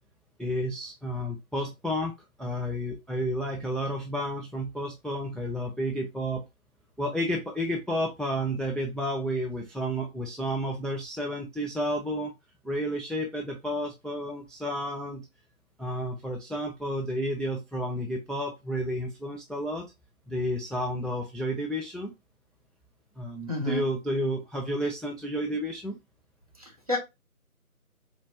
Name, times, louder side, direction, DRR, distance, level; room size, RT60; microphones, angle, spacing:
voice 1, 0.4-2.1 2.4-6.4 7.0-12.3 12.6-15.3 15.8-19.8 20.3-22.1 23.2-26.0, equal, ahead, 0 dB, 0.4 m, -31 dB
voice 2, 23.5-23.8 26.6-27.0, left 1 dB, 25° right, 0 dB, 0.8 m, -29 dB
4.0 x 2.7 x 3.3 m, 0.22 s
figure-of-eight pair, 160°, 44 cm